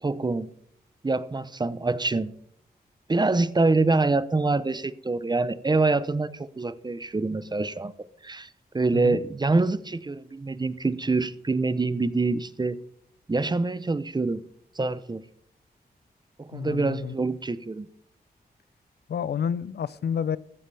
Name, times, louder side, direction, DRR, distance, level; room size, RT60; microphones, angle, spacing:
voice 1, 0.0-0.5 1.0-2.3 3.1-12.8 13.3-14.4 14.7-15.2 16.4-17.9, right 3 dB, 25° right, 0.7 m, -25 dB
voice 2, 16.5-17.1 19.1-20.4, left 7 dB, 80° left, 0.6 m, -29 dB
15.5 x 12.5 x 3.4 m
wide cardioid pair, 90°, 17 cm